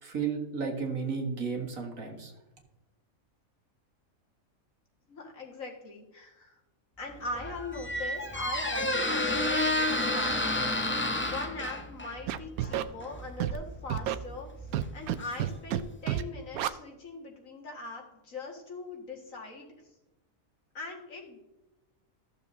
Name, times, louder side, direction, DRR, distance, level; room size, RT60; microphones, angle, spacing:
voice 1, 0.0-2.3, right 5 dB, 70° right, 1 dB, 2.1 m, -33 dB
voice 2, 5.1-6.6 7.0-10.4 11.2-19.7 20.7-21.6, left 3 dB, 65° left, 0 dB, 2.2 m, -41 dB
Squeak, 7.1-15.9, left 1 dB, 15° left, 0.4 m, -31 dB
Scratching (performance technique), 12.3-12.8 13.4-13.6 13.9-14.1 14.7-15.1 15.4-15.8 16.1-16.2 16.5-16.7, right 13 dB, 85° right, 1.0 m, -29 dB
14.0 x 6.9 x 2.7 m, 1.0 s
omnidirectional pair, 1.5 m